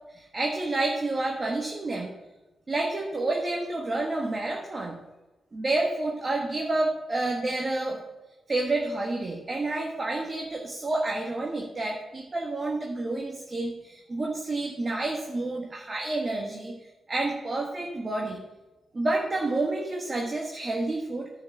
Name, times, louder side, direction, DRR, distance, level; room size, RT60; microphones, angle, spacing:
voice 1, 0.1-2.1 2.7-5.0 5.5-8.0 8.5-16.8 17.1-18.4 18.9-21.3, right 2 dB, 40° right, 1 dB, 1.5 m, -29 dB
10.0 x 5.1 x 7.0 m, 1.1 s
hypercardioid pair, 40°, 0 cm